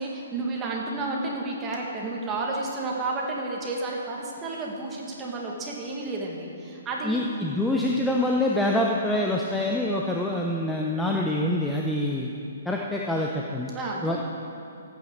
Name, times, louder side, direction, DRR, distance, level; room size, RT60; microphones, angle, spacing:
voice 1, 0.0-7.2 13.7-14.2, right 2 dB, 15° right, -2 dB, 1.9 m, -31 dB
voice 2, 7.0-12.3 12.7-13.7 14.0-14.2, left 1 dB, 5° left, -2 dB, 0.7 m, -25 dB
13.5 x 9.2 x 6.5 m, 2.6 s
hypercardioid pair, 160°, 0 cm